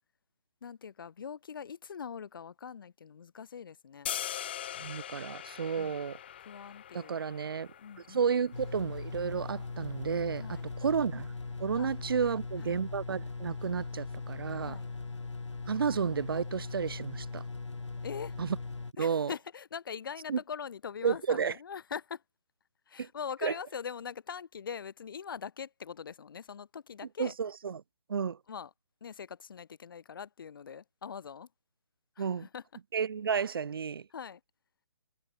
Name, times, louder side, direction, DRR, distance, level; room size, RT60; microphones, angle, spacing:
voice 1, 0.6-4.1 5.7-6.0 6.4-8.3 10.3-10.7 11.8-11.9 12.2-12.8 14.5-14.9 18.0-18.4 19.0-22.2 22.9-27.4 28.5-28.7 29.0-31.5 32.1-32.6 34.1-34.4, left 7 dB, 50° left, 4.8 m, -42 dB
sound 1, 4.1-10.2, left 10 dB, 20° left, 0.4 m, -42 dB
voice 2, 4.8-6.2 6.9-7.7 8.1-10.5 10.8-11.3 11.6-14.8 15.7-17.4 18.4-18.6 19.0-19.3 20.3-20.4 21.0-21.5 23.0-23.1 23.4-23.5 27.2-27.8 28.1-28.4 32.2-32.5 32.9-34.1, right 6 dB, 50° right, 1.0 m, -31 dB
sound 2, 8.5-18.9, left 3 dB, 80° left, 0.8 m, -40 dB
figure-of-eight pair, 145°, 15 cm